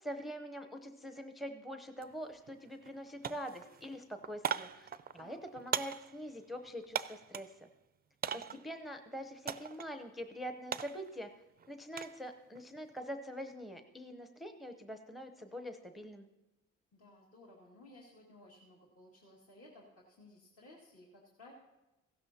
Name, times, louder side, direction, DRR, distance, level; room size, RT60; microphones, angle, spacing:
voice 1, 0.0-7.5 8.3-11.3 11.7-16.3, equal, ahead, 7 dB, 0.7 m, -44 dB
sound 1, 2.0-2.1 2.5-3.0 3.2-7.6 8.2-8.7 9.5-9.9 10.2-12.2 12.6-13.0, right 8 dB, 30° right, 0.4 m, -40 dB
voice 2, 8.2-8.6 16.9-21.5, left 2 dB, 50° left, -3 dB, 2.1 m, -58 dB
16.0 x 12.0 x 2.8 m, 1.0 s
cardioid pair, 90°, 30 cm